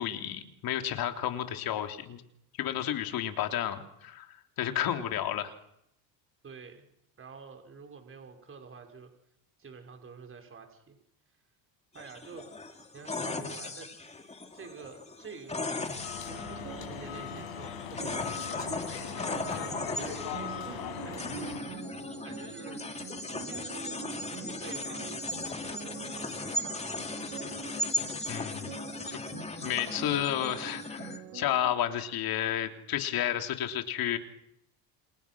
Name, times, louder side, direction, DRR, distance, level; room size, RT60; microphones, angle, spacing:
voice 1, 0.0-2.2 2.6-4.3 4.6-5.5 28.3-28.7 29.1-29.2 29.6-34.2, left 11 dB, 55° left, 6 dB, 3.3 m, -31 dB
voice 2, 6.4-6.9 7.2-9.1 9.6-11.0 11.9-12.5 12.9-14.0 14.5-15.7 16.2-18.7 19.2-21.7 22.2-22.9 23.2-27.1, right 5 dB, 30° right, 5 dB, 5.8 m, -48 dB
sound 1, 11.9-31.2, left 2 dB, 15° left, 2.7 m, -37 dB
sound 2, 16.0-21.6, left 9 dB, 85° left, 7.1 m, -39 dB
sound 3, 16.1-31.7, right 11 dB, 70° right, 4.7 m, -46 dB
29.5 x 29.0 x 6.3 m, 0.77 s
cardioid pair, 125°, 43 cm